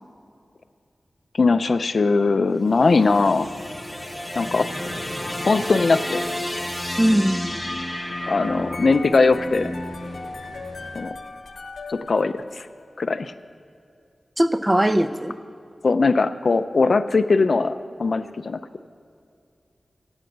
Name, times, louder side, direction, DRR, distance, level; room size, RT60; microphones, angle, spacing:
voice 1, 1.3-3.5 4.4-4.7 5.4-6.2 8.3-9.8 11.0-11.1 11.9-12.7 13.0-13.3 15.8-18.6, left 3 dB, 60° left, 11 dB, 0.5 m, -20 dB
sound 1, 2.6-10.9, left 1 dB, 10° left, 1.3 m, -32 dB
sound 2, 2.9-11.0, right 1 dB, 55° right, 2.1 m, -42 dB
voice 2, 7.0-7.6 14.4-15.3, right 1 dB, 15° right, 11 dB, 0.6 m, -20 dB
sound 3, 8.7-12.8, left 3 dB, 75° left, 0.9 m, -38 dB
11.5 x 8.9 x 7.9 m, 2.4 s
wide cardioid pair, 90°, 0 cm